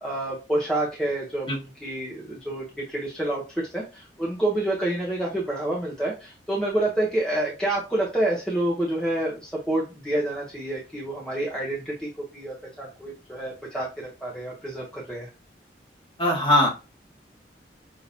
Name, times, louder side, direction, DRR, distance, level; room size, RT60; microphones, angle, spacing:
voice 1, 0.0-1.5 1.8-3.4 3.7-15.3, right 1 dB, 5° left, -4 dB, 0.9 m, -28 dB
voice 2, 16.2-16.7, left 1 dB, 25° left, -3 dB, 1.6 m, -20 dB
5.7 x 2.8 x 2.7 m, 0.30 s
head